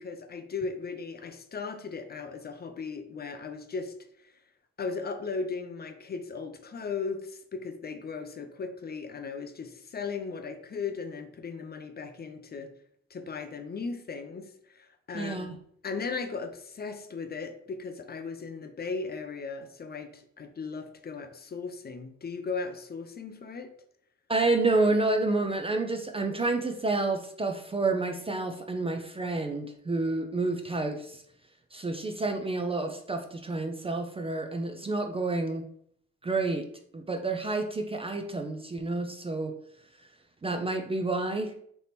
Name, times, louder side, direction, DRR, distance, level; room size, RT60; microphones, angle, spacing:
voice 1, 0.0-4.0 4.2-4.3 4.8-12.7 13.1-15.6 15.8-23.7, left 4 dB, 35° left, 7 dB, 0.5 m, -37 dB
voice 2, 15.1-15.5 24.3-31.2 31.7-35.6 36.2-36.7 36.9-39.5 40.4-41.5, right 3 dB, 20° right, 4 dB, 0.4 m, -29 dB
3.4 x 2.9 x 4.1 m, 0.66 s
cardioid pair, 90°, 30 cm